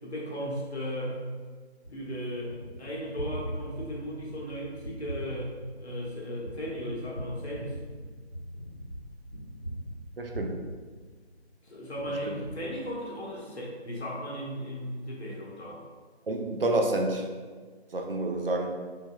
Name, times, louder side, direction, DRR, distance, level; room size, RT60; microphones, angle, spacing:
voice 1, 0.0-1.2 1.9-7.8 11.6-15.8, equal, 75° left, -4 dB, 1.3 m, -36 dB
Gunshot gunfire, 1.8-11.5 11.9-13.4, equal, 30° right, 1.2 m, -41 dB
voice 2, 10.2-10.6 12.3-12.4 16.3-17.2 17.9-18.7, right 2 dB, 60° right, 2 dB, 0.5 m, -28 dB
4.7 x 2.8 x 2.2 m, 1.5 s
figure-of-eight pair, 170°, 33 cm